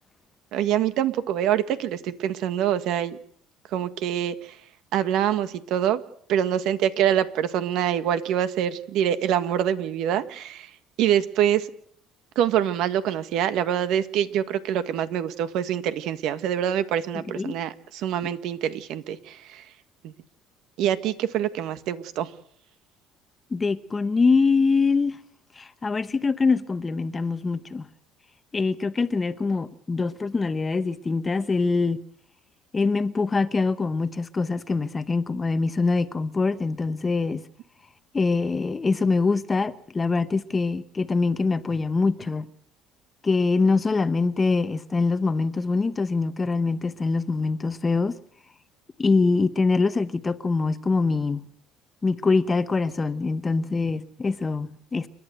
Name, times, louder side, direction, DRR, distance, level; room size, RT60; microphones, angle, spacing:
voice 1, 0.5-3.2 3.7-4.5 4.9-6.0 6.3-10.7 11.0-11.7 12.3-19.6 20.0-20.1 20.8-22.3, right 10 dB, 70° right, 1.6 m, -25 dB
voice 2, 23.5-25.2 25.6-27.8 28.5-32.0 32.7-37.4 38.1-42.5 43.2-48.2 49.0-51.4 52.0-55.1, left 4 dB, 20° left, 0.9 m, -24 dB
29.5 x 12.0 x 8.0 m
cardioid pair, 125°, 0 cm